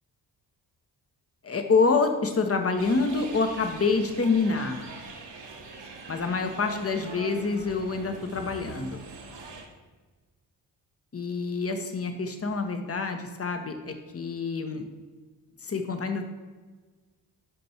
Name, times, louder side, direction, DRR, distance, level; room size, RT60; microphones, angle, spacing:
voice 1, 1.4-4.8 6.1-9.0 11.1-14.8 15.6-16.3, left 4 dB, 30° left, 6 dB, 1.2 m, -27 dB
sound 1, 2.8-9.6, right 3 dB, 60° right, 1.6 m, -43 dB
11.5 x 5.2 x 3.0 m, 1.3 s
hypercardioid pair, 40°, 47 cm